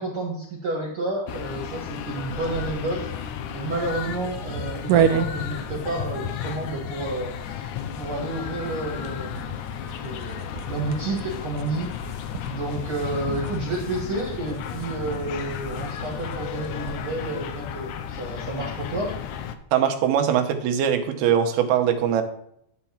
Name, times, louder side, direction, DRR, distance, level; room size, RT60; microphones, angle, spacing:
voice 1, 0.0-12.2 12.5-19.1, right 2 dB, 45° right, -2 dB, 1.9 m, -31 dB
sound 1, 1.3-19.6, left 9 dB, 85° left, 1.7 m, -34 dB
sound 2, 2.3-17.2, right 8 dB, 75° right, 2.1 m, -32 dB
voice 2, 19.7-22.2, right 9 dB, 90° right, 6 dB, 3.0 m, -21 dB
12.0 x 4.6 x 7.2 m, 0.73 s
omnidirectional pair, 4.3 m